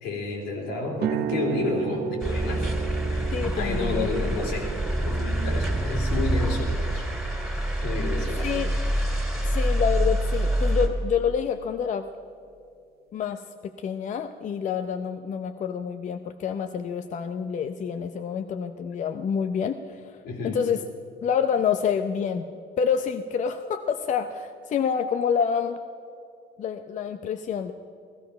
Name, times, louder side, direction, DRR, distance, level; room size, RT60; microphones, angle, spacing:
voice 1, 0.0-2.7 3.0-7.1 7.8-8.6 20.2-20.6, left 3 dB, 90° left, -1 dB, 3.4 m, -31 dB
sound 1, 1.0-9.0, right 11 dB, 70° right, 0.6 m, -35 dB
sound 2, 2.2-10.9, right 1 dB, 5° right, 2.7 m, -26 dB
voice 2, 3.3-4.4 8.4-8.7 9.4-12.1 13.1-20.2 20.4-20.8 21.2-22.5 22.8-25.8 26.6-27.7, left 7 dB, 45° left, 8 dB, 0.6 m, -27 dB
15.5 x 15.0 x 5.8 m, 2.4 s
cardioid pair, 110°, 17 cm